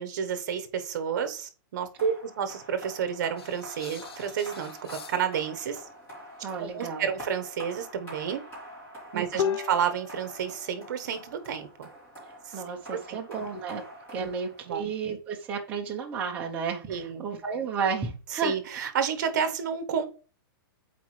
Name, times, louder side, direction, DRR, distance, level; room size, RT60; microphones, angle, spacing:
voice 1, 0.0-5.8 6.6-8.4 9.1-11.9 12.5-12.6 12.9-13.2 14.2-14.3 14.7-14.9 16.9-17.2 18.3-20.0, right 7 dB, 50° right, 9 dB, 1.1 m, -30 dB
sound 1, 2.0-15.0, equal, 15° left, 3.3 m, -46 dB
sound 2, 3.4-5.4 9.4-10.7, left 8 dB, 90° left, 0.7 m, -35 dB
voice 2, 6.4-7.1 9.1-9.6 12.5-13.8 14.1-18.5, right 5 dB, 10° right, 0 dB, 0.7 m, -32 dB
8.2 x 4.2 x 3.2 m, 0.36 s
hypercardioid pair, 180°, 13 cm